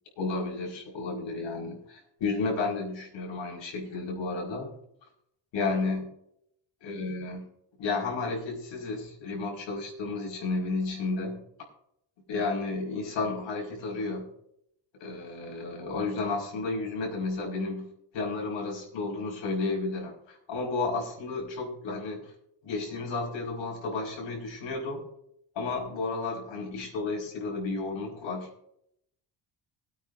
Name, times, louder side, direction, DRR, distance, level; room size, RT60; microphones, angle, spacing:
voice 1, 0.2-4.7 5.5-6.0 6.8-7.5 7.8-11.4 12.3-14.3 15.0-22.3 22.6-25.0 25.6-28.5, left 3 dB, 70° left, 0 dB, 5.1 m, -32 dB
22.0 x 9.1 x 2.6 m, 0.73 s
cardioid pair, 170°, 46 cm